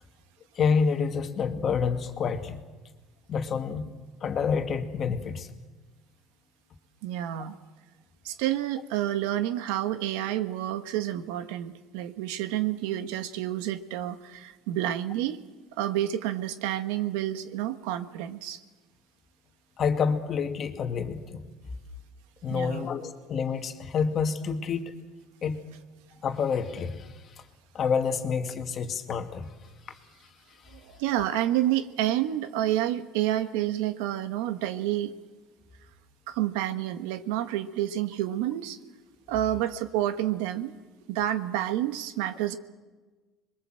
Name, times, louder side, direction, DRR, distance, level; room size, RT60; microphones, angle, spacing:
voice 1, 0.6-2.6 3.3-3.9 4.2-5.5 19.8-21.5 22.4-24.9 25.4-25.6 26.2-27.1 27.7-29.5 31.1-31.2, left 6 dB, 40° left, 6 dB, 1.9 m, -28 dB
voice 2, 7.0-7.5 8.2-15.4 15.8-18.6 22.5-22.9 30.7-35.1 36.3-38.8 39.3-40.7 41.1-42.6, right 13 dB, 90° right, 10 dB, 1.2 m, -29 dB
26.0 x 22.0 x 7.7 m, 1.3 s
cardioid pair, 130°, 0 cm